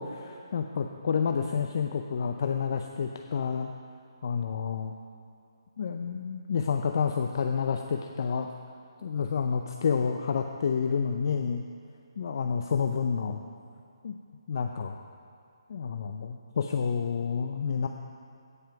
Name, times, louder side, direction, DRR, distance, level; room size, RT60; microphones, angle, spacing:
voice 1, 0.0-3.7 4.2-4.9 5.8-8.5 9.0-11.6 12.2-13.4 14.0-14.2 14.5-15.0 15.7-17.9, left 6 dB, 50° left, 5 dB, 0.5 m, -29 dB
16.0 x 5.6 x 5.9 m, 2.5 s
hypercardioid pair, 155°, 3 cm